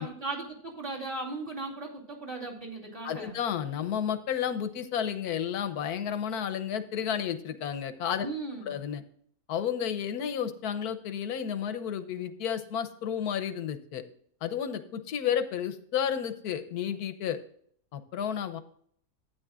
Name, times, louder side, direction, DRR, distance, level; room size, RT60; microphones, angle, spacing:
voice 1, 0.0-3.4 8.2-8.7, right 3 dB, 30° right, -1 dB, 2.6 m, -37 dB
voice 2, 3.0-8.3 8.7-9.0 9.5-14.0 14.4-17.4 17.9-18.6, left 8 dB, 85° left, 10 dB, 1.4 m, -32 dB
12.5 x 9.2 x 2.4 m, 0.62 s
omnidirectional pair, 1.6 m